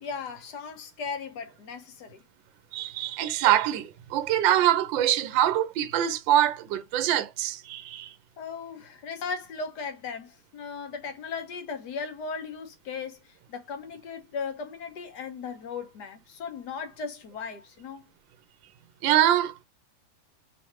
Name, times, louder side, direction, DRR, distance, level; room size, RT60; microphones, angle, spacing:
voice 1, 0.0-2.2 8.4-13.2 13.5-18.0, left 5 dB, 60° left, 1.5 m, -37 dB
voice 2, 2.7-8.1 19.0-19.6, right 12 dB, 80° right, 1.3 m, -24 dB
4.8 x 3.2 x 2.9 m
omnidirectional pair, 2.1 m